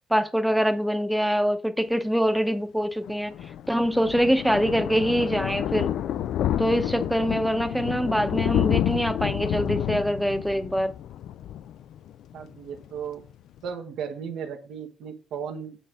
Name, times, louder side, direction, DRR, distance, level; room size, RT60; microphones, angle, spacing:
voice 1, 0.1-3.3 3.7-5.9 6.6-10.9, equal, ahead, 0.8 m, -24 dB
Thunder, 3.0-12.4 12.8-13.0 13.3-13.4 13.6-13.7, left 11 dB, 80° left, 0.3 m, -29 dB
voice 2, 12.3-13.2 13.6-15.8, right 7 dB, 80° right, 1.2 m, -35 dB
7.8 x 3.3 x 6.3 m
cardioid pair, 90°, 0 cm